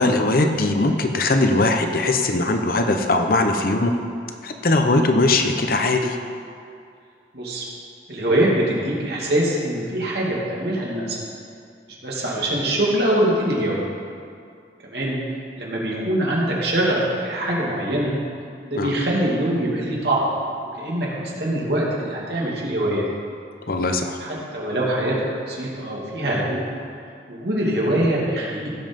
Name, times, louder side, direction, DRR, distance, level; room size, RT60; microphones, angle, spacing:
voice 1, 0.0-3.9 4.4-6.2 18.8-18.9 23.7-24.4, left 2 dB, 55° left, 5 dB, 0.8 m, -20 dB
voice 2, 7.3-7.6 8.1-11.2 12.0-13.8 14.8-15.2 15.6-18.2 18.6-20.2 20.8-23.0 24.2-26.6 27.3-28.7, right 1 dB, 65° right, -4 dB, 2.5 m, -23 dB
16.5 x 5.5 x 5.3 m, 2.3 s
head